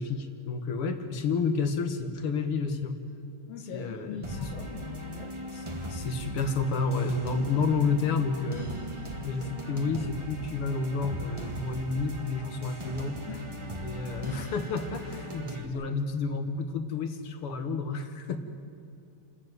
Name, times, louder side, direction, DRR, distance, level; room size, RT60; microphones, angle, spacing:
voice 1, 0.0-2.9 3.6-4.5 5.5-5.6 5.9-8.7 9.2-13.2 13.8-18.4, left 4 dB, 55° left, 8 dB, 1.6 m, -30 dB
voice 2, 3.5-5.3 13.3-13.5 15.7-15.8, left 7 dB, 80° left, 2 dB, 3.3 m, -41 dB
sound 1, 4.2-15.6, equal, 25° right, 0.6 m, -39 dB
29.0 x 14.0 x 9.4 m, 2.6 s
omnidirectional pair, 4.1 m